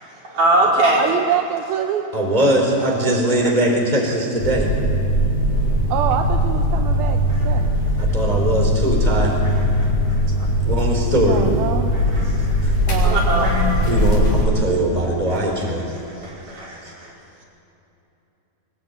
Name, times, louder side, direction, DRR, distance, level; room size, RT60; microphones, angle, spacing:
voice 1, 0.0-1.0 3.4-3.5 8.1-8.3 9.4-9.9 12.1-12.6 13.0-13.7 15.3-15.7 16.1-17.1, right 1 dB, 55° right, -4 dB, 6.6 m, -22 dB
voice 2, 1.0-2.1 5.9-7.7 11.3-11.9 12.9-13.5, right 10 dB, 80° right, 5 dB, 2.7 m, -25 dB
voice 3, 2.1-4.7 8.0-9.3 10.7-11.4 12.6-12.7 13.8-15.8, right 1 dB, 10° right, 1 dB, 4.0 m, -20 dB
sound 1, 4.4-14.4, equal, 50° left, 5.5 m, -20 dB
24.5 x 21.5 x 9.4 m, 2.9 s
omnidirectional pair, 4.5 m